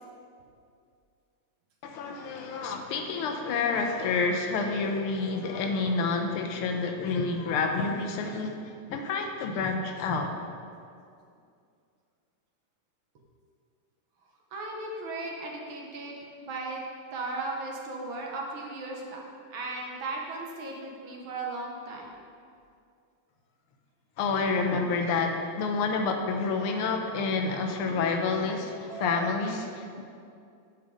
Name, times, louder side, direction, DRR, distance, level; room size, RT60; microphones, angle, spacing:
voice 1, 1.8-10.3 24.2-30.0, left 4 dB, 90° left, 3 dB, 1.7 m, -29 dB
voice 2, 14.5-16.2 16.4-16.8 17.1-19.2 19.5-22.2 28.9-29.3, right 2 dB, 70° right, -1 dB, 1.8 m, -36 dB
9.1 x 5.7 x 5.0 m, 2.4 s
omnidirectional pair, 2.3 m